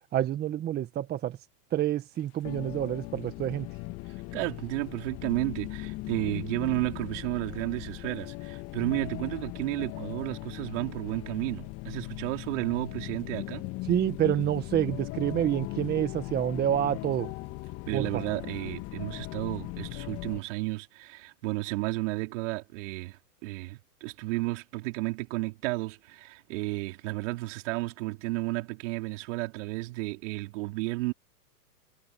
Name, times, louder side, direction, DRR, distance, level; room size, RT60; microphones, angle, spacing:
voice 1, 0.1-1.4 1.7-3.7 13.9-17.3 17.9-18.2, right 11 dB, 20° right, 1.6 m, -28 dB
sound 1, 2.4-20.4, left 20 dB, 30° left, 1.8 m, -38 dB
voice 2, 4.3-13.7 17.9-31.1, right 22 dB, 50° right, 4.7 m, -32 dB
hypercardioid pair, 135°, 46 cm